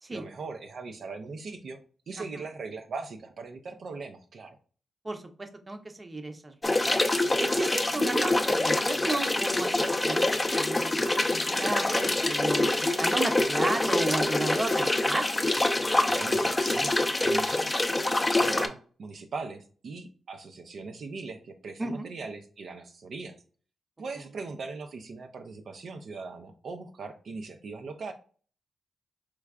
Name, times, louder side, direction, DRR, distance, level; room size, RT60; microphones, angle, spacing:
voice 1, 0.1-4.6 16.1-17.8 18.4-23.3 24.0-28.1, right 4 dB, 65° right, 5 dB, 0.5 m, -40 dB
voice 2, 5.0-6.7 7.5-10.3 10.5-15.2 21.8-22.1, right 2 dB, 25° right, 6 dB, 0.8 m, -33 dB
sound 1, 6.6-18.7, left 2 dB, 20° left, 0.5 m, -25 dB
4.6 x 3.2 x 2.4 m, 0.40 s
cardioid pair, 90°, 0 cm